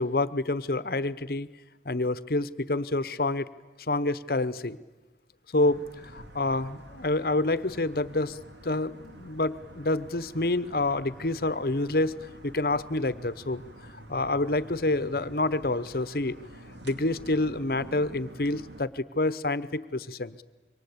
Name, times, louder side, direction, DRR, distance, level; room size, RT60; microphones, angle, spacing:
voice 1, 0.0-1.5 1.8-3.5 3.9-4.8 5.5-5.8 6.1-8.4 8.6-12.1 12.4-13.6 14.1-16.4 16.8-20.4, left 2 dB, 55° left, 15 dB, 1.0 m, -27 dB
sound 1, 5.6-18.8, right 1 dB, 85° right, 2.7 m, -48 dB
27.0 x 24.0 x 8.6 m, 1.1 s
head